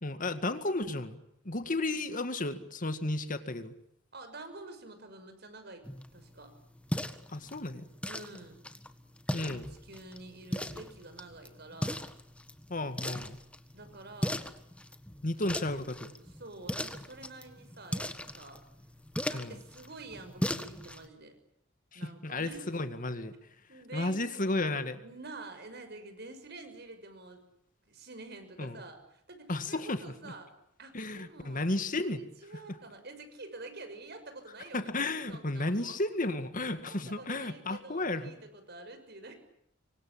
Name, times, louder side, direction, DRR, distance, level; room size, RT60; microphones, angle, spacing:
voice 1, 0.0-1.2 1.5-3.7 7.3-7.8 9.3-9.7 12.7-13.4 15.2-16.1 19.3-19.6 21.9-23.3 23.9-25.0 28.6-28.8 29.5-30.3 30.9-32.2 34.7-38.3, left 2 dB, 45° left, 10 dB, 2.0 m, -33 dB
voice 2, 4.1-6.5 8.1-8.6 9.4-12.0 13.7-14.4 15.4-15.6 15.9-18.6 19.3-21.4 21.9-22.8 23.7-24.2 25.0-27.4 27.9-30.5 30.8-36.0 36.9-39.3, right 2 dB, 55° right, 8 dB, 6.3 m, -48 dB
sound 1, 5.8-21.1, left 1 dB, 5° left, 1.6 m, -39 dB
26.5 x 24.0 x 8.7 m, 0.75 s
head